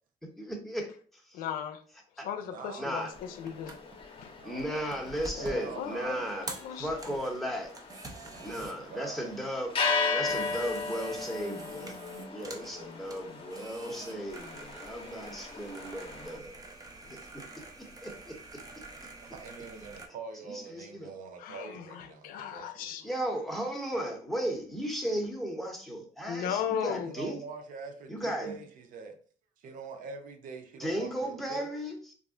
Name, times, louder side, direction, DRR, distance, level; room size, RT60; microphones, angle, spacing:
voice 1, 0.4-1.4 2.2-2.3 2.8-3.1 4.4-6.5 6.7-7.7 8.4-9.7 10.1-16.6 17.1-17.6 18.0-18.4 20.4-21.1 23.0-27.4 28.1-28.6 30.8-32.1, right 1 dB, ahead, 0.9 m, -35 dB
voice 2, 1.3-1.8 2.2-3.8 4.2-4.3 5.5-7.2 17.0-17.1 21.4-23.1 26.3-27.1, left 8 dB, 80° left, 0.4 m, -37 dB
voice 3, 2.5-3.0 4.4-4.9 5.4-6.3 8.3-9.3 19.2-23.3 26.9-29.2 29.6-31.7, right 5 dB, 70° right, 0.6 m, -44 dB
sound 1, 2.9-16.4, left 4 dB, 40° left, 0.7 m, -37 dB
sound 2, 3.1-20.1, right 2 dB, 25° right, 0.7 m, -47 dB
2.4 x 2.0 x 3.6 m
cardioid pair, 85°, 14 cm